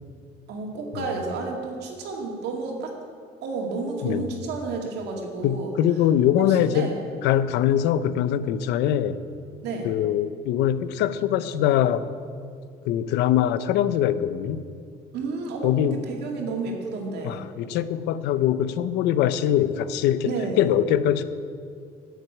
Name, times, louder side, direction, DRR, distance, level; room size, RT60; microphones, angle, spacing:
voice 1, 0.5-2.9 3.4-5.7 6.4-7.0 9.6-9.9 15.1-17.4 20.2-20.7, right 3 dB, 80° right, 1 dB, 2.3 m, -31 dB
voice 2, 4.0-4.4 5.4-6.9 7.2-9.2 9.8-12.1 12.8-14.6 15.6-16.0 17.2-21.2, left 10 dB, 90° left, 14 dB, 0.6 m, -23 dB
9.4 x 8.1 x 8.5 m, 2.3 s
cardioid pair, 110°, 17 cm